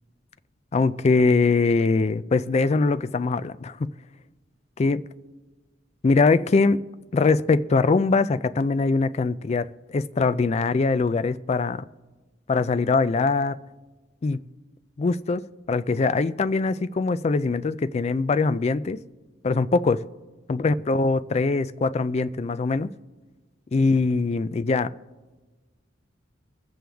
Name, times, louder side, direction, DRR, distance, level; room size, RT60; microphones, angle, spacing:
voice 1, 0.7-3.9 4.8-5.1 6.0-6.8 7.1-11.8 12.5-13.6 14.2-14.4 15.0-15.4 15.7-19.0 19.4-20.1 20.5-22.9 23.7-24.9, left 3 dB, 35° left, 0.3 m, -22 dB
23.0 x 7.7 x 3.4 m
head